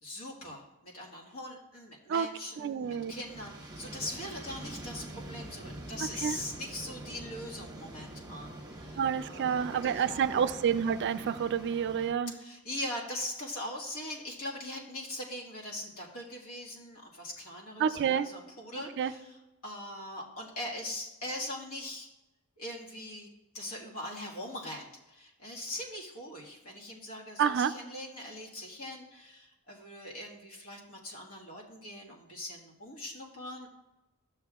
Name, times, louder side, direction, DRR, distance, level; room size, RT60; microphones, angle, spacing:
voice 1, 0.0-10.4 12.3-22.1 22.6-23.3 23.5-33.7, left 1 dB, 70° left, -3 dB, 1.6 m, -41 dB
voice 2, 2.6-3.1 6.2-6.4 9.0-12.3 17.8-18.3 19.0-19.1 27.4-27.7, right 7 dB, 50° right, 12 dB, 0.3 m, -28 dB
sound 1, 2.8-12.1, right 1 dB, 20° right, 1.0 m, -45 dB
12.5 x 6.6 x 2.3 m, 0.99 s
head